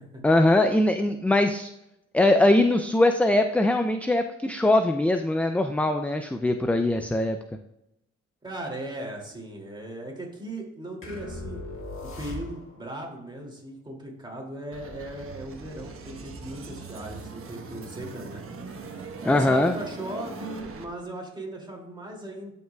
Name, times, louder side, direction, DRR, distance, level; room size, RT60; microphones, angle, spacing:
voice 1, 0.2-1.7 2.1-7.4 19.3-19.7, left 1 dB, 5° left, 7 dB, 0.3 m, -21 dB
voice 2, 8.4-11.6 12.2-18.4 18.9-22.5, right 1 dB, 15° right, -1 dB, 2.4 m, -38 dB
sound 1, 11.0-12.9, left 1 dB, 45° left, 1.7 m, -38 dB
sound 2, 14.7-20.9, right 4 dB, 45° right, 1.1 m, -41 dB
12.5 x 5.5 x 2.3 m, 0.85 s
cardioid pair, 90°, 30 cm